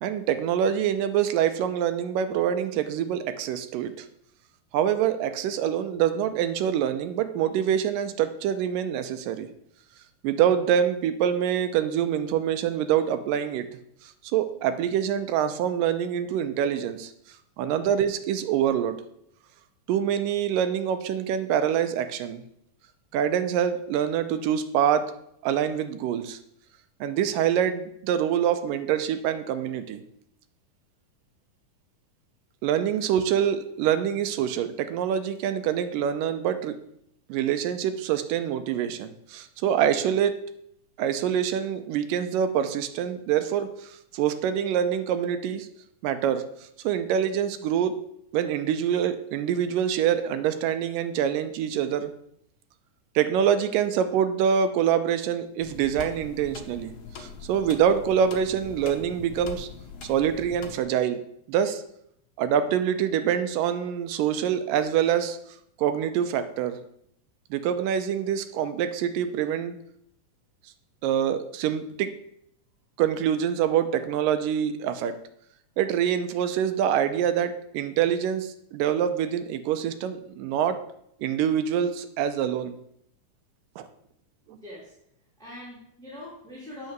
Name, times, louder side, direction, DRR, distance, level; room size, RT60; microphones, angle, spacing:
voice 1, 0.0-4.1 4.7-9.5 10.2-13.7 14.3-17.1 17.6-19.0 19.9-22.4 23.1-25.2 25.4-26.4 27.0-30.0 32.6-36.8 37.3-40.4 41.0-45.7 46.0-46.5 46.8-48.0 48.3-52.1 53.2-56.9 57.2-59.7 60.0-61.2 61.5-61.8 62.4-65.4 65.8-66.8 67.5-69.7 71.0-72.1 73.0-75.2 75.8-80.8 81.2-82.7 83.8-83.9, right 9 dB, 75° right, 10 dB, 2.3 m, -25 dB
sound 1, 55.6-60.8, left 5 dB, 60° left, 1.8 m, -42 dB
voice 2, 84.5-84.9 85.4-86.9, left 1 dB, ahead, -8 dB, 2.7 m, -43 dB
9.3 x 5.8 x 6.7 m, 0.73 s
omnidirectional pair, 4.1 m